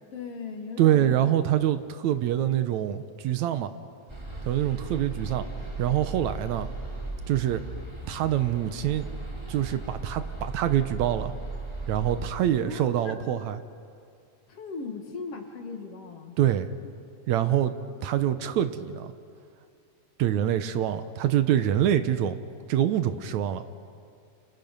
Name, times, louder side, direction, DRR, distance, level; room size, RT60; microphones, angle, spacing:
voice 1, 0.1-1.2 12.6-13.2 14.5-16.4, left 5 dB, 55° left, 4 dB, 2.6 m, -38 dB
voice 2, 0.8-3.7 4.4-5.5 5.8-6.7 7.3-7.6 8.1-9.1 9.5-11.3 11.9-13.6 16.4-16.7 17.3-17.7 18.0-19.1 20.2-22.4 22.7-23.6, right 11 dB, 75° right, 10 dB, 2.1 m, -25 dB
sound 1, 4.1-12.3, right 3 dB, 10° right, 2.5 m, -37 dB
29.0 x 28.5 x 5.4 m, 2.4 s
omnidirectional pair, 3.5 m